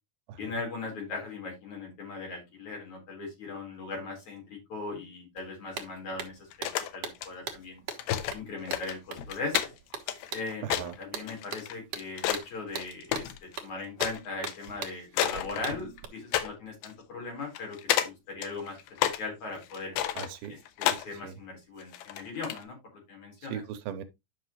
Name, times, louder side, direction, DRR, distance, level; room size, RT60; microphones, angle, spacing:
voice 1, 0.4-7.8 8.3-9.6 10.3-10.7 11.0-19.9 20.5-23.6, left 3 dB, 50° left, 5.2 m, -39 dB
sound 1, 5.4-5.5 5.8-16.0, right 6 dB, 55° right, 1.8 m, -41 dB
sound 2, 6.5-7.3 7.9-8.4 8.7-12.5 12.7-13.6 14.0-14.2 14.5-14.7 15.1-16.0 16.3-16.5 16.8-16.9 17.6-18.1 18.4-19.2 19.6-21.1 21.8-22.6, left 12 dB, 80° left, 2.8 m, -30 dB
voice 2, 10.6-10.9 20.2-20.6 20.9-21.3 23.5-24.0, right 9 dB, 80° right, 2.5 m, -38 dB
11.0 x 5.9 x 3.0 m
omnidirectional pair, 4.5 m